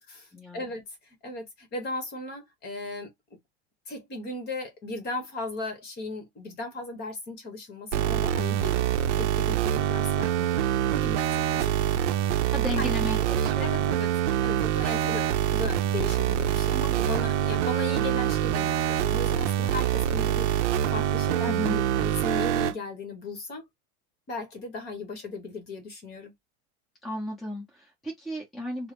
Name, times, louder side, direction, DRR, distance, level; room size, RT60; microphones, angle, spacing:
voice 1, 0.3-0.7 12.5-13.9 21.5-21.8 27.0-28.9, left 1 dB, ahead, 0.8 m, -34 dB
voice 2, 1.2-3.1 3.9-11.7 12.7-13.1 13.6-23.6 24.3-26.3, left 2 dB, 30° left, 1.1 m, -37 dB
sound 1, 7.9-22.7, right 10 dB, 85° right, 0.6 m, -25 dB
3.3 x 2.0 x 3.1 m
supercardioid pair, 165°, 34 cm